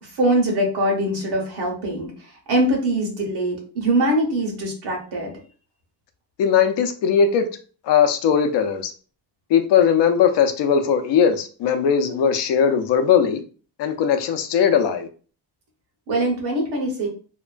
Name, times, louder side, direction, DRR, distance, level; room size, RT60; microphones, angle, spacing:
voice 1, 0.0-5.3 16.1-17.1, right 1 dB, 70° right, 0 dB, 1.2 m, -23 dB
voice 2, 6.4-7.5 7.9-8.9 9.5-13.4 13.8-15.1, left 7 dB, 80° left, 7 dB, 0.6 m, -19 dB
2.9 x 2.2 x 2.4 m, 0.38 s
cardioid pair, 150°, 41 cm